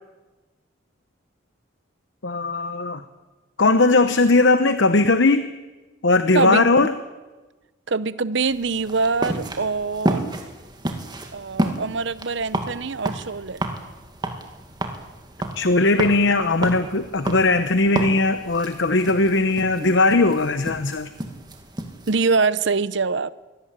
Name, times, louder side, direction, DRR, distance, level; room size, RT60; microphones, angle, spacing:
voice 1, 2.2-3.0 3.6-5.5 6.0-6.9 15.5-21.1, left 3 dB, 65° left, 0.9 m, -19 dB
voice 2, 6.3-6.9 7.9-10.3 11.3-13.6 19.8-19.9 22.1-23.3, right 4 dB, 60° right, 0.8 m, -24 dB
sound 1, 8.5-22.1, right 1 dB, 20° right, 2.1 m, -31 dB
23.5 x 17.5 x 8.9 m
head